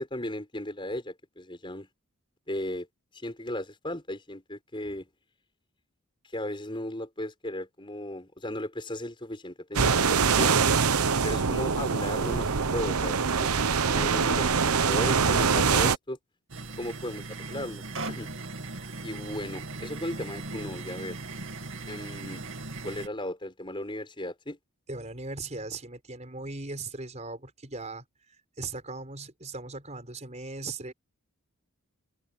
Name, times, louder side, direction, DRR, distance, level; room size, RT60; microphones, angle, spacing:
voice 1, 0.0-1.9 2.5-2.9 3.1-5.1 6.3-10.6 11.2-16.2 16.8-18.3 19.0-21.2 21.8-22.4 22.8-24.6, left 1 dB, 20° left, 6.0 m, -36 dB
sound 1, 9.7-16.0, right 5 dB, 85° right, 0.9 m, -24 dB
sound 2, 16.5-23.1, right 3 dB, 60° right, 2.6 m, -38 dB
voice 2, 24.9-28.0 28.6-30.9, right 3 dB, 30° right, 5.2 m, -38 dB
open air
head